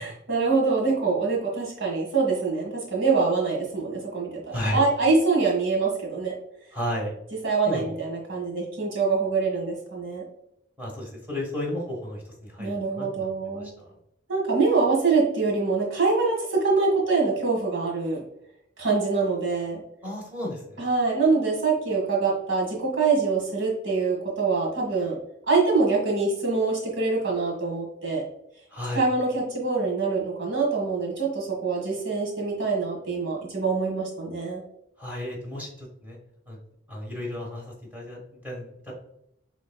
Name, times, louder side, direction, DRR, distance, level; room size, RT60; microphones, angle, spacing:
voice 1, 0.0-6.3 7.4-10.2 12.6-13.7 14.3-18.2 18.8-19.8 20.8-25.2 25.5-28.2 28.9-34.6, right 4 dB, 75° right, -2 dB, 1.7 m, -24 dB
voice 2, 6.7-7.1 7.6-8.0 10.8-13.9 20.0-20.8 28.7-29.0 35.0-36.2 36.5-36.6 36.9-38.9, left 1 dB, 10° right, -3 dB, 1.2 m, -33 dB
6.3 x 3.5 x 2.2 m, 0.77 s
head